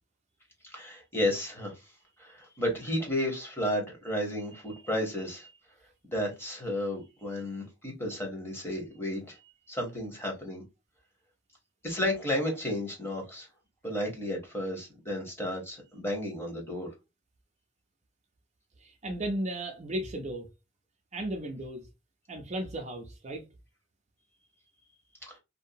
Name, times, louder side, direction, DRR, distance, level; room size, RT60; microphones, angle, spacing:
voice 1, 0.6-1.7 2.2-5.5 6.1-10.6 11.8-13.5 13.8-16.9 25.3-25.4, left 1 dB, 10° left, 1.0 m, -33 dB
voice 2, 18.8-20.5 21.1-21.9 22.3-23.4, right 1 dB, 35° right, 0.5 m, -35 dB
2.7 x 2.2 x 2.6 m
head